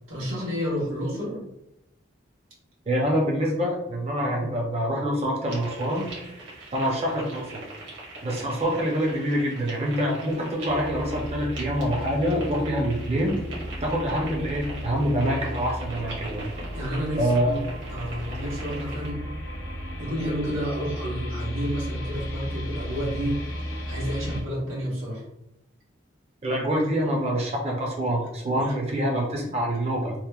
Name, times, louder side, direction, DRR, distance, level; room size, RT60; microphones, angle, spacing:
voice 1, 0.1-1.4 16.7-19.2 20.0-23.4 23.9-25.2 28.6-28.9, equal, 90° right, -5 dB, 1.1 m, -30 dB
voice 2, 2.9-6.1 6.7-7.6 8.2-13.4 13.8-16.4 17.2-17.5 26.4-30.1, equal, 30° right, -2 dB, 0.4 m, -26 dB
sound 1, 5.5-19.1, right 2 dB, 65° right, 0.8 m, -41 dB
sound 2, 10.6-24.4, equal, 80° left, 0.5 m, -35 dB
2.9 x 2.0 x 2.2 m, 0.84 s
head